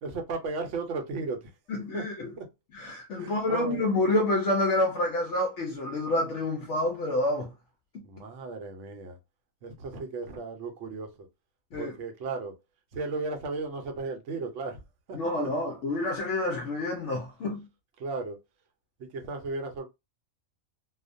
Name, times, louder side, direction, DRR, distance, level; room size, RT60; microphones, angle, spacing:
voice 1, 0.0-1.5 1.9-2.0 3.2-3.8 8.0-9.2 9.6-11.1 11.7-12.6 12.9-14.8 15.1-15.2 18.0-18.4 19.1-19.9, right 3 dB, 65° right, 0.9 m, -35 dB
voice 2, 1.7-2.3 2.7-7.5 11.7-11.9 15.1-17.6, left 1 dB, 65° left, 0.8 m, -28 dB
2.4 x 2.1 x 2.5 m
omnidirectional pair, 1.5 m